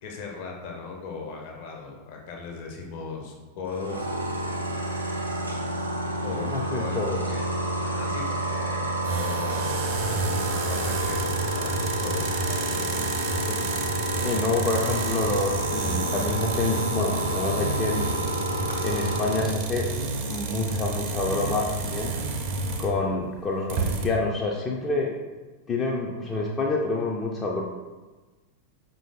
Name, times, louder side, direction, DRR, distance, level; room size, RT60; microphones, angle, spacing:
voice 1, 0.0-4.1 4.6-4.8 6.2-6.5 6.7-12.3, left 4 dB, 50° left, 1 dB, 0.8 m, -38 dB
sound 1, 3.7-19.4, right 1 dB, 85° right, 0.5 m, -29 dB
voice 2, 6.5-7.2 13.5-13.7 14.2-18.1 18.8-19.9 20.3-22.2 22.8-25.2 25.7-27.6, left 3 dB, 20° left, -2 dB, 0.5 m, -27 dB
sound 2, 9.0-23.0 23.4-23.5 23.7-24.1, right 3 dB, 45° right, 0.6 m, -30 dB
5.0 x 2.6 x 3.6 m, 1.2 s
figure-of-eight pair, 90°, 0 cm